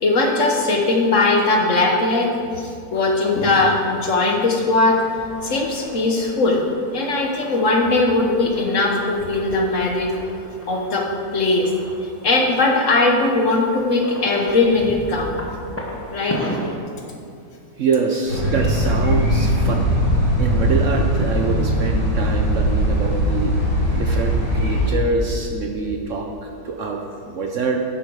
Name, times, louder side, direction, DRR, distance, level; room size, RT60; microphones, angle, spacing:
voice 1, 0.0-2.3 2.6-5.0 5.4-6.6 6.9-10.1 10.7-11.1 11.3-11.7 12.0-15.4 16.1-16.4, left 2 dB, 50° left, 1 dB, 1.3 m, -19 dB
sound 1, 2.9-16.8, equal, 15° left, 0.6 m, -36 dB
voice 2, 17.8-19.9 20.4-23.5 23.9-27.8, right 4 dB, 60° right, 2 dB, 0.9 m, -25 dB
sound 2, 18.3-24.9, equal, 85° right, 3.5 m, -20 dB
10.5 x 8.3 x 4.7 m, 2.5 s
omnidirectional pair, 1.8 m